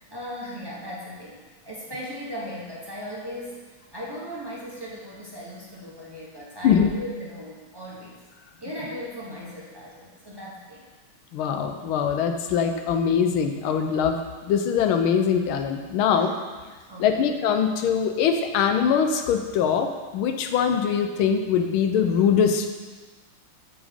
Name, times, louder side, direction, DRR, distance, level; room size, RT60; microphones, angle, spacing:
voice 1, 0.1-8.2 8.6-10.9 16.1-16.2 16.9-17.3, equal, 40° right, -6 dB, 0.3 m, -38 dB
voice 2, 11.3-14.2 14.5-16.4 17.0-19.9 20.1-22.7, left 7 dB, 80° left, 6 dB, 1.4 m, -22 dB
8.3 x 5.2 x 3.5 m, 1.4 s
omnidirectional pair, 2.3 m